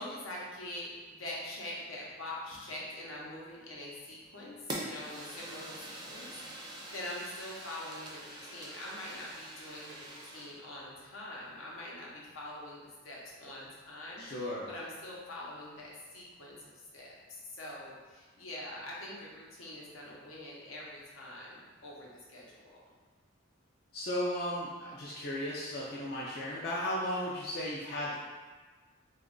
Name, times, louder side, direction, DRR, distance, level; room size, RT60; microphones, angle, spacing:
voice 1, 0.0-12.8 13.0-16.6 16.9-22.8, left 1 dB, 80° left, -4 dB, 0.8 m, -44 dB
Fire, 4.7-10.6, right 1 dB, 20° right, 0.4 m, -44 dB
voice 2, 14.2-14.7 23.9-28.2, left 1 dB, 50° left, -6 dB, 0.4 m, -35 dB
3.0 x 2.4 x 3.7 m, 1.3 s
head